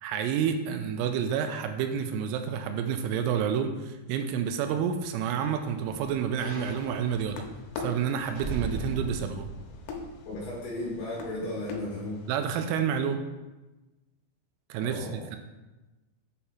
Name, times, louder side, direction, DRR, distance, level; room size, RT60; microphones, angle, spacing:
voice 1, 0.0-7.4 7.8-9.5 12.3-13.2 14.7-15.4, right 7 dB, 85° right, 7 dB, 3.1 m, -29 dB
sound 1, 5.0-11.0 11.4-11.5, right 3 dB, 60° right, 3.5 m, -40 dB
sound 2, 6.8-12.4, left 4 dB, 85° left, 3.1 m, -43 dB
voice 2, 10.3-12.2 14.8-15.3, left 1 dB, 65° left, -5 dB, 2.8 m, -35 dB
8.4 x 5.7 x 2.7 m, 1.1 s
omnidirectional pair, 5.9 m